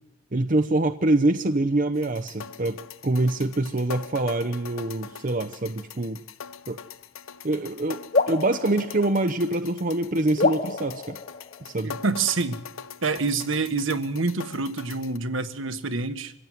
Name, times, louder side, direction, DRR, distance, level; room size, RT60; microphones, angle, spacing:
voice 1, 0.3-2.8 3.0-6.2 6.7-6.8 7.4-8.0 8.3-11.2 11.6-11.9, right 2 dB, 40° right, 9 dB, 0.8 m, -25 dB
sound 1, 1.9-15.2, left 7 dB, 80° left, 0.8 m, -42 dB
sound 2, 8.1-9.8 10.4-12.1, left 3 dB, 40° left, 1.0 m, -28 dB
voice 2, 11.8-12.6 13.0-16.3, right 4 dB, 70° right, 9 dB, 1.6 m, -27 dB
26.0 x 16.0 x 9.3 m, 0.93 s
head